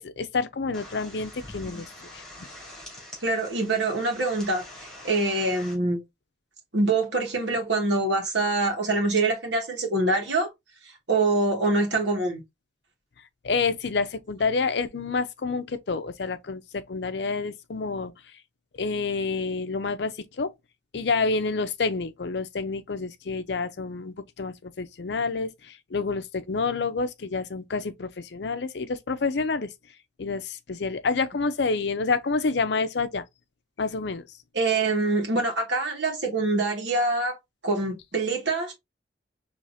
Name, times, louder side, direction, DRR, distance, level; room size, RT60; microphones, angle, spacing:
voice 1, 0.0-2.5 13.4-18.1 18.8-20.5 20.9-29.7 30.2-33.2 33.8-34.3, left 4 dB, 70° left, 0.6 m, -28 dB
sound 1, 0.7-5.8, left 1 dB, 5° left, 2.4 m, -44 dB
voice 2, 3.2-4.6 5.0-6.0 6.7-10.5 11.1-12.4 34.5-37.4 37.6-38.7, right 2 dB, 80° right, 1.7 m, -25 dB
4.9 x 3.2 x 2.5 m
head